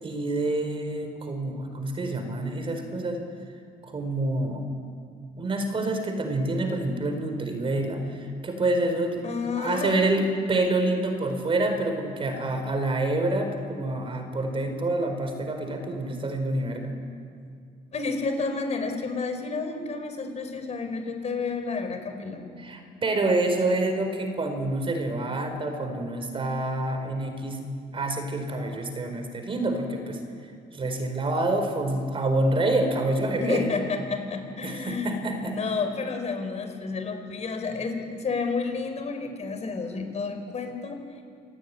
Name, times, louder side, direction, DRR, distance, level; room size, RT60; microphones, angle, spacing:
voice 1, 0.0-3.2 3.8-4.7 5.4-9.2 9.6-16.9 22.6-27.6 27.9-30.2 30.7-33.7 34.6-35.6, right 2 dB, 30° right, 6 dB, 4.6 m, -27 dB
voice 2, 9.2-9.9 17.9-22.4 33.4-41.0, left 4 dB, 40° left, 6 dB, 5.0 m, -30 dB
27.0 x 19.0 x 9.9 m, 2.3 s
cardioid pair, 110°, 17 cm